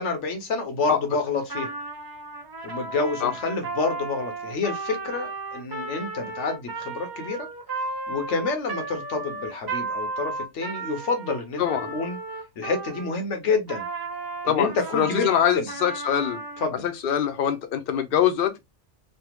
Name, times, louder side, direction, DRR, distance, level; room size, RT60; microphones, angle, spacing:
voice 1, 0.0-1.7 2.6-7.5 8.1-11.6 11.9-12.2 12.6-13.8 14.4-15.3 15.5-15.7 16.6-16.8, left 4 dB, 85° left, 1.2 m, -28 dB
Trumpet, 1.4-13.2 13.7-16.7, right 3 dB, 35° right, 0.4 m, -34 dB
voice 2, 11.6-11.9 14.4-16.4 16.8-18.6, left 9 dB, 60° left, 0.8 m, -24 dB
3.3 x 2.2 x 3.0 m
omnidirectional pair, 1.2 m